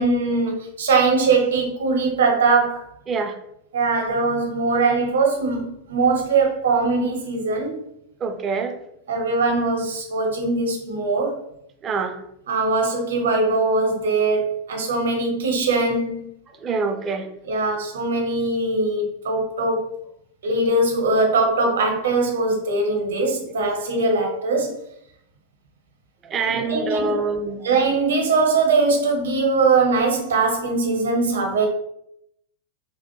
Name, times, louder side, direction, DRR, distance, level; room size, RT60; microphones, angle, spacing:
voice 1, 0.0-2.9 3.7-7.9 9.1-11.4 12.5-16.3 17.5-19.9 20.4-24.8 26.5-27.2 27.6-31.7, right 3 dB, 65° right, 1 dB, 0.7 m, -21 dB
voice 2, 3.1-3.4 8.2-8.8 11.8-12.2 16.6-17.3 26.2-27.7, right 4 dB, 25° right, 5 dB, 0.4 m, -25 dB
2.9 x 2.1 x 3.0 m, 0.77 s
figure-of-eight pair, 90°, 0 cm